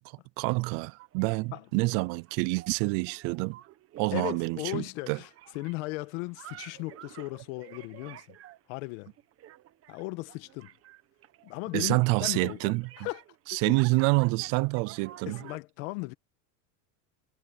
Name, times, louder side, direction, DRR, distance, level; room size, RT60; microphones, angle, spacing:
voice 1, 0.4-3.6 4.0-5.2 11.7-12.9 13.5-15.4, right 26 dB, 55° right, 0.5 m, -27 dB
sound 1, 1.0-15.6, right 13 dB, 35° right, 1.2 m, -51 dB
voice 2, 4.1-5.3 5.5-8.2 8.7-9.1 9.9-10.7 11.4-12.7 13.0-13.2 13.5-13.7 15.3-16.1, left 23 dB, 70° left, 1.6 m, -36 dB
cardioid pair, 160°, 42 cm